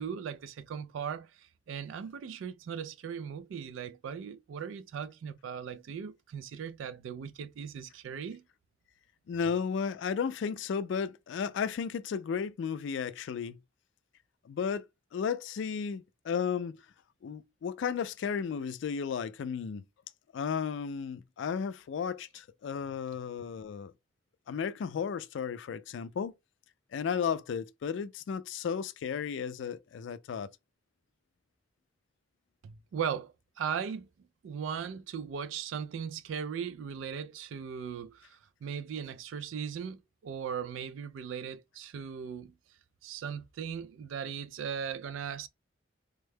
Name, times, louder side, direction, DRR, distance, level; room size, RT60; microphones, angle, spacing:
voice 1, 0.0-8.4 32.6-42.5 43.0-45.5, right 7 dB, 85° right, 0.3 m, -38 dB
voice 2, 9.3-13.6 14.5-14.8 15.1-16.8 17.2-19.8 20.3-23.9 24.5-26.3 26.9-30.5, left 6 dB, 70° left, 0.3 m, -34 dB
3.5 x 2.1 x 3.3 m
head